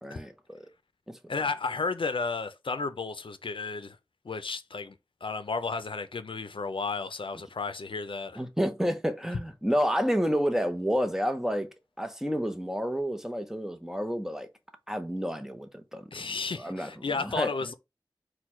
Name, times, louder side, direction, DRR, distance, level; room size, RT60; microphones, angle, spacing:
voice 1, 0.0-0.7 1.1-1.2 8.4-11.7 12.0-14.5 14.9-16.3 16.6-17.5, equal, 5° right, 0.7 m, -30 dB
voice 2, 1.3-4.0 4.2-4.9 5.2-8.4 16.1-17.7, left 4 dB, 90° left, 0.4 m, -33 dB
4.4 x 2.2 x 4.3 m
wide cardioid pair, 60°, 9 cm